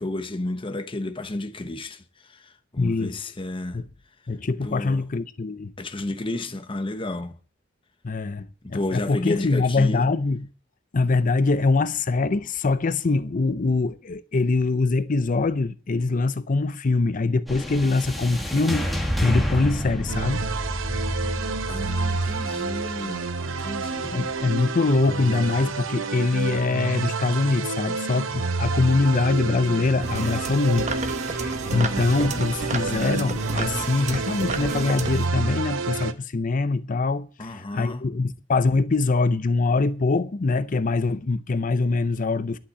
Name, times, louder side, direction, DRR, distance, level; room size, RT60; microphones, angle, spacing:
voice 1, 0.0-3.8 4.6-5.0 5.8-7.4 8.6-10.1 21.7-24.4 37.4-38.0, left 2 dB, 25° left, 0.9 m, -32 dB
voice 2, 2.8-3.2 3.7-3.8 4.3-5.7 8.0-10.5 10.9-20.5 24.0-42.6, left 3 dB, 45° left, 0.5 m, -23 dB
sound 1, 17.5-25.9, equal, ahead, 1.7 m, -31 dB
sound 2, 20.1-36.1, right 4 dB, 90° right, 0.9 m, -29 dB
sound 3, 30.0-35.3, right 3 dB, 40° right, 1.0 m, -31 dB
11.5 x 5.9 x 8.0 m
head